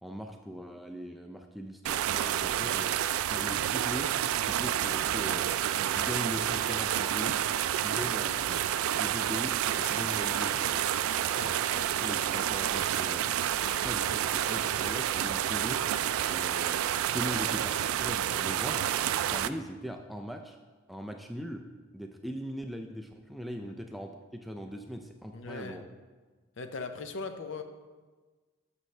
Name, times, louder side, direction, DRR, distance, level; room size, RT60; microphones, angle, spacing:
voice 1, 0.0-2.9 3.3-4.1 4.4-5.5 5.9-7.4 7.8-8.7 8.9-10.8 11.7-13.3 13.6-15.8 16.3-16.8 17.1-18.9 19.3-20.6 20.9-21.6 21.9-25.8, equal, ahead, 3 dB, 0.3 m, -40 dB
sound 1, 1.8-19.5, right 11 dB, 85° right, 0.3 m, -29 dB
sound 2, 5.9-6.3 6.6-10.1 10.5-10.8 11.1-11.7 12.0-12.5 12.8-13.2 13.6-13.8 14.1-14.2 14.4-14.6 14.8-14.9 15.2-15.6 15.9-16.3 16.7-16.9, left 1 dB, 45° left, 2.1 m, -50 dB
voice 2, 11.3-11.9 23.7-23.8 25.3-25.8 26.6-27.6, left 4 dB, 60° left, 8 dB, 0.6 m, -40 dB
12.5 x 5.4 x 3.2 m, 1.4 s
head